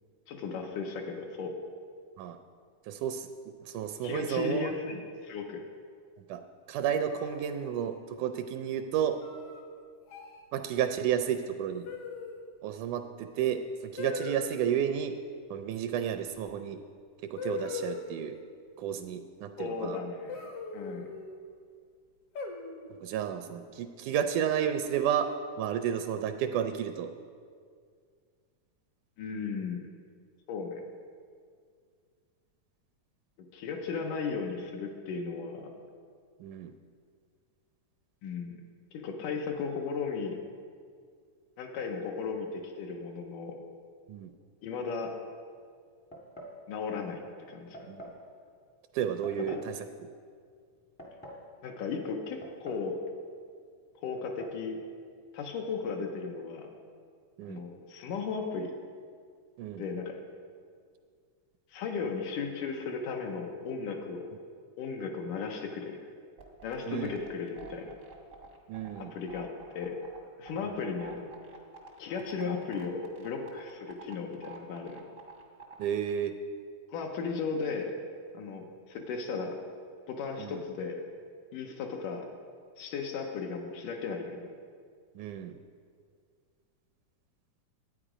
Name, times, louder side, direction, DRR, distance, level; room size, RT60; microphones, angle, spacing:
voice 1, 0.3-1.6 4.0-5.6 19.6-20.5 20.7-21.1 29.2-29.8 30.5-30.8 33.5-35.7 38.2-38.5 38.9-40.4 41.6-43.6 44.6-45.1 46.7-47.9 49.5-49.6 51.6-53.0 54.0-54.8 55.3-56.7 57.5-58.7 59.7-60.2 61.7-64.3 64.8-66.0 66.6-67.9 69.0-70.0 70.4-71.3 72.0-75.0 76.9-77.9 78.3-79.6 80.1-81.0 81.5-82.3 82.8-84.5, left 5 dB, 80° left, 2 dB, 2.3 m, -36 dB
voice 2, 2.8-3.3 3.6-4.7 6.3-6.4 6.7-9.2 10.5-11.9 12.6-15.2 15.5-16.8 17.2-18.4 18.8-20.0 23.0-25.3 25.6-27.1 36.4-36.7 44.1-44.3 47.9-48.0 48.9-49.9 57.4-57.6 59.6-59.8 66.9-67.2 68.7-69.1 70.6-70.7 75.8-76.3 80.4-80.6 85.2-85.6, right 9 dB, 80° right, 7 dB, 1.9 m, -32 dB
sound 1, 7.1-8.0 9.2-9.6 10.1-10.4 11.8-12.5 14.0-14.6 16.5-16.6 17.4-18.3 20.3-21.4 22.3-23.0 24.2-24.8, left 4 dB, 65° left, 1.6 m, -40 dB
sound 2, 46.1-46.6 47.7-48.2 49.2-49.7 50.7-51.5 52.4-52.9 53.2-53.3 54.2-54.6, equal, 10° left, 0.4 m, -46 dB
sound 3, 66.4-75.8, right 5 dB, 65° right, 0.8 m, -48 dB
11.0 x 9.1 x 4.9 m, 2.1 s
omnidirectional pair, 3.7 m